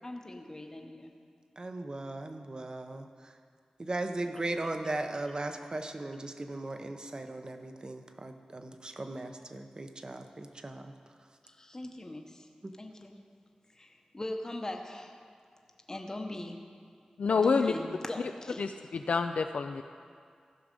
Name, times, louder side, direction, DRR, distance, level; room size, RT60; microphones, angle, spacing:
voice 1, 0.0-1.1 11.5-12.5 12.8-13.1 13.7-15.2 15.9-16.6 17.3-18.6, left 1 dB, 25° left, 3 dB, 0.8 m, -40 dB
voice 2, 1.6-3.1 3.8-10.9, right 2 dB, 35° right, 6 dB, 0.7 m, -37 dB
voice 3, 17.2-17.7 18.6-19.8, left 5 dB, 80° left, 6 dB, 0.3 m, -28 dB
15.0 x 6.2 x 5.2 m, 2.2 s
wide cardioid pair, 95°, 2 cm